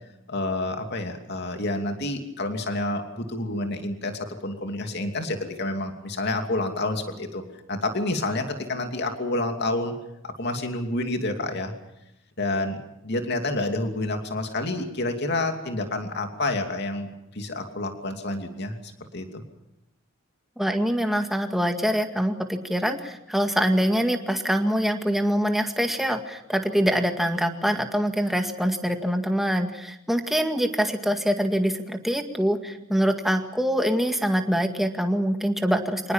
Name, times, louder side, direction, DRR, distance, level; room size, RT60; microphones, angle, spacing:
voice 1, 0.3-7.4 7.7-9.9 10.2-11.7 12.4-12.8 13.0-18.8 19.1-19.4, left 2 dB, 55° left, 5 dB, 2.8 m, -29 dB
voice 2, 20.6-36.1, equal, ahead, 5 dB, 2.0 m, -24 dB
26.0 x 19.5 x 7.3 m, 0.87 s
head